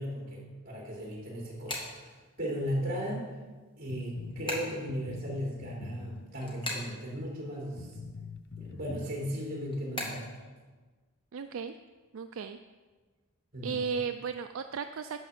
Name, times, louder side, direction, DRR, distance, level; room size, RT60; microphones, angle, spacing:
voice 1, 0.0-3.3 3.8-7.9 8.6-10.3 13.5-13.8, equal, 45° right, -3 dB, 3.5 m, -36 dB
sound 1, 0.8-2.7 3.1-7.8 8.1-10.4, left 1 dB, 25° left, 1.9 m, -40 dB
sound 2, 3.9-6.6 7.2-7.3 7.8-9.1, left 5 dB, 55° left, 0.5 m, -44 dB
voice 2, 11.3-11.7 12.1-12.6 13.6-15.2, right 6 dB, 75° right, 8 dB, 0.4 m, -35 dB
11.5 x 5.0 x 7.2 m, 1.3 s
head